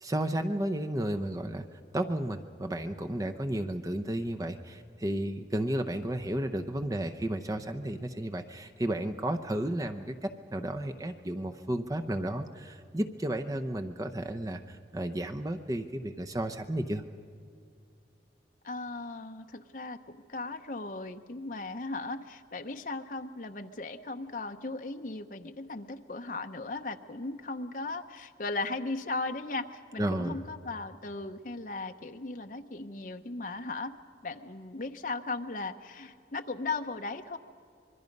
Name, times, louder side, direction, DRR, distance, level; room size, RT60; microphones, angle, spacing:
voice 1, 0.0-1.6 1.9-17.0 30.0-30.4, right 1 dB, 20° right, 6 dB, 0.7 m, -33 dB
voice 2, 18.6-33.9 34.2-37.4, left 3 dB, 50° left, 6 dB, 0.8 m, -37 dB
26.0 x 22.0 x 5.3 m, 2.4 s
head